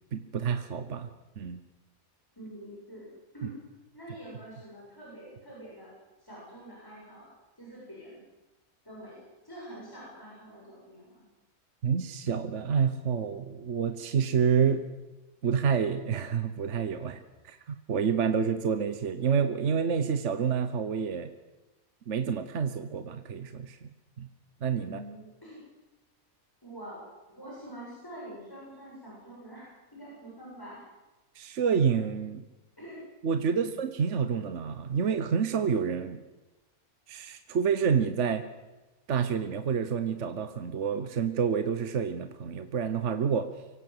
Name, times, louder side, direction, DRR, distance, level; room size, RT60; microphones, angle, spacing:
voice 1, 0.1-1.1 1.4-1.6 11.8-14.8 15.4-21.3 22.1-23.9 24.2-24.3 24.6-25.0 31.3-32.4 33.2-36.2 37.1-38.5 39.1-43.5, right 6 dB, 55° right, 10 dB, 1.4 m, -28 dB
voice 2, 2.4-3.6 3.9-5.9 6.2-8.2 8.8-11.3 24.8-25.6 26.6-30.9 32.8-33.0 33.5-33.8, right 1 dB, 15° left, -6 dB, 7.6 m, -46 dB
24.5 x 17.5 x 7.9 m, 1.1 s
omnidirectional pair, 1.5 m